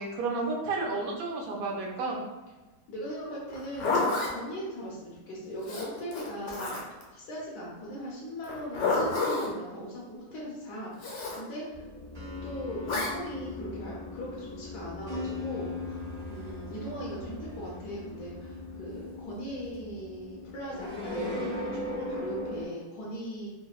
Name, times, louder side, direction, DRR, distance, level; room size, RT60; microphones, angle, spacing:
voice 1, 0.0-2.2, right 3 dB, 70° right, -1 dB, 1.0 m, -31 dB
voice 2, 2.9-6.8 7.1-11.9 12.4-16.0 16.3-23.5, equal, 85° left, -5 dB, 1.2 m, -39 dB
Zipper (clothing), 3.5-4.3 5.6-7.0 8.4-9.5 11.0-11.4 12.9-13.1, left 3 dB, 60° left, 0.8 m, -29 dB
sound 1, 11.7-22.7, left 2 dB, 20° right, 0.8 m, -38 dB
3.3 x 2.1 x 2.3 m, 1.2 s
omnidirectional pair, 1.7 m